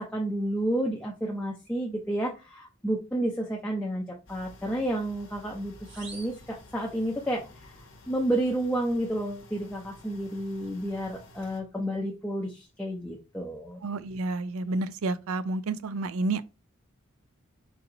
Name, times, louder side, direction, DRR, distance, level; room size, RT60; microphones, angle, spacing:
voice 1, 0.0-7.7 8.1-13.8, right 1 dB, 5° left, 0.5 m, -31 dB
sound 1, 4.3-11.6, left 1 dB, 65° left, 0.9 m, -52 dB
sound 2, 5.8-7.4, right 4 dB, 55° right, 1.3 m, -49 dB
voice 2, 13.8-16.4, right 2 dB, 85° right, 0.4 m, -30 dB
4.2 x 2.8 x 3.8 m
head